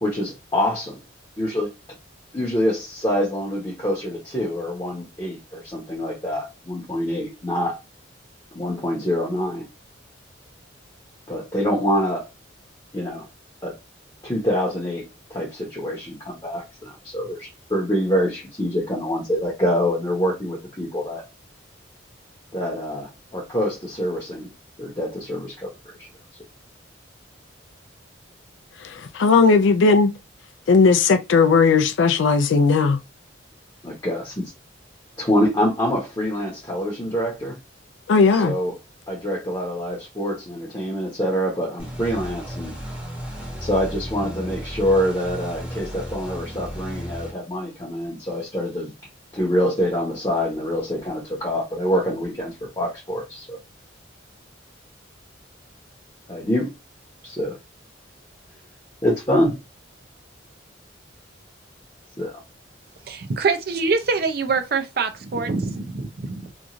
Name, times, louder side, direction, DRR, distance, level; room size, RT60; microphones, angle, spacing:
voice 1, 0.0-1.0 1.4-1.7 2.3-7.8 8.5-9.7 11.3-12.3 12.9-13.3 13.6-13.8 14.2-21.2 22.5-24.5 24.8-25.7 26.0-26.1 33.8-34.4 35.2-37.6 38.3-38.8 39.1-42.7 43.6-48.9 49.3-53.6 56.3-56.7 57.2-57.6 59.0-59.5 62.2-62.4, equal, 20° left, 0.9 m, -25 dB
voice 2, 29.1-30.1 30.7-33.0 38.1-38.5, left 4 dB, 75° left, 0.4 m, -16 dB
sound 1, 41.8-47.3, equal, 10° right, 0.9 m, -34 dB
voice 3, 63.1-66.5, right 4 dB, 50° right, 0.5 m, -24 dB
3.0 x 2.4 x 2.5 m
head